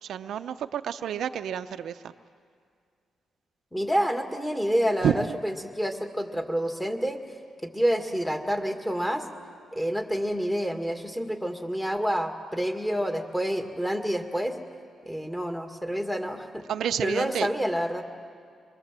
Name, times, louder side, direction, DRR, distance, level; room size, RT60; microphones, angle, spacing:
voice 1, 0.0-2.1 5.0-5.3 16.7-17.5, right 9 dB, 75° right, 9 dB, 0.6 m, -29 dB
voice 2, 3.7-7.2 7.6-9.2 9.7-14.6 15.0-16.6 17.0-18.0, equal, 5° left, 4 dB, 2.0 m, -28 dB
25.0 x 22.5 x 7.5 m, 2.3 s
cardioid pair, 105°, 0 cm